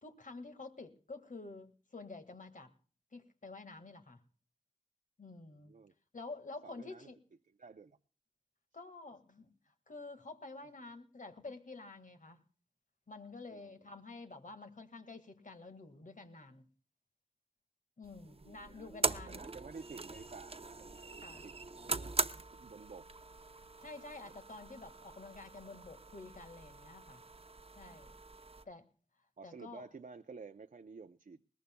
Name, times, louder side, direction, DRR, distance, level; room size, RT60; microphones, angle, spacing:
voice 1, 0.0-2.7 3.1-4.2 5.2-5.7 6.1-7.2 8.7-9.5 9.9-12.4 13.1-16.7 18.0-19.5 21.2-21.4 23.8-27.2 27.8-28.2 28.7-28.8 29.4-29.8, left 3 dB, 75° left, 7 dB, 1.8 m, -49 dB
voice 2, 5.6-5.9 6.6-7.1 7.6-8.0 13.5-13.9 18.2-21.5 21.8-22.1 22.5-23.3 24.2-24.3 27.9-28.0 28.6-28.7 29.4-31.4, right 4 dB, 90° right, 8 dB, 0.6 m, -52 dB
sound 1, 18.0-28.6, right 3 dB, 45° right, 0.7 m, -41 dB
21.5 x 19.0 x 2.2 m, 0.40 s
wide cardioid pair, 60°, 13 cm